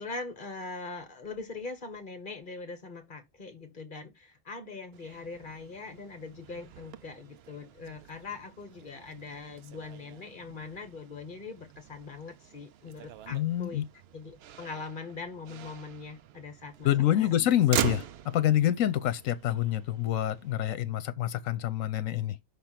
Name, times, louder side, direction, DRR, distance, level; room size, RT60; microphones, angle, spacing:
voice 1, 0.0-13.8 14.1-17.3, left 4 dB, 40° left, 1.5 m, -42 dB
Motor vehicle (road), 4.9-20.8, right 10 dB, 60° right, 0.7 m, -42 dB
voice 2, 13.3-13.8 16.8-18.1 18.3-22.4, left 12 dB, 80° left, 1.1 m, -26 dB
5.8 x 3.5 x 5.8 m
omnidirectional pair, 1.4 m